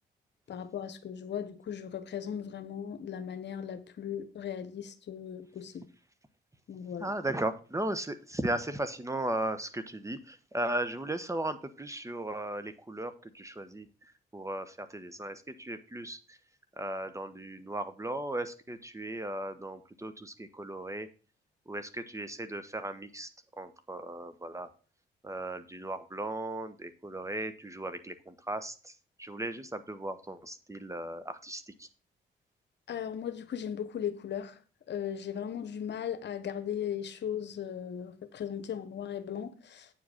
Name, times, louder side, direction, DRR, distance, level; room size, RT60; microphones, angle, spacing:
voice 1, 0.5-5.9 6.7-7.1 32.9-34.6 34.9-39.9, left 8 dB, 65° left, 1.1 m, -37 dB
voice 2, 7.0-16.4 16.8-21.1 21.7-23.3 23.6-24.7 25.2-28.9 29.2-31.9, right 1 dB, 15° right, 1.1 m, -36 dB
8.9 x 4.8 x 6.4 m
supercardioid pair, 65°, 19 cm